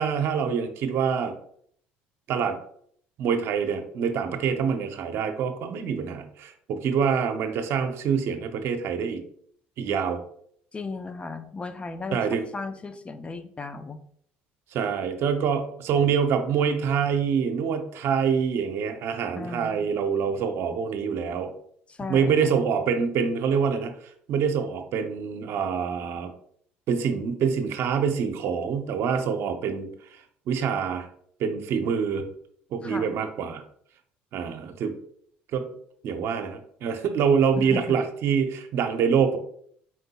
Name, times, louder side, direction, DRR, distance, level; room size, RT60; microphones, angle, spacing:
voice 1, 0.0-1.3 2.3-2.6 3.2-9.2 9.8-10.2 12.1-12.4 14.7-21.5 22.1-23.9 24.3-26.3 26.9-29.9 30.5-31.1 31.4-32.3 32.7-33.6 34.3-34.9 35.5-35.6 36.0-39.4, right 6 dB, 65° right, 7 dB, 0.6 m, -25 dB
voice 2, 10.7-14.0 19.4-19.9 21.9-22.6 32.8-33.2 37.6-38.0, left 3 dB, 25° left, 9 dB, 0.4 m, -36 dB
4.5 x 3.8 x 2.3 m, 0.63 s
supercardioid pair, 80°, 5 cm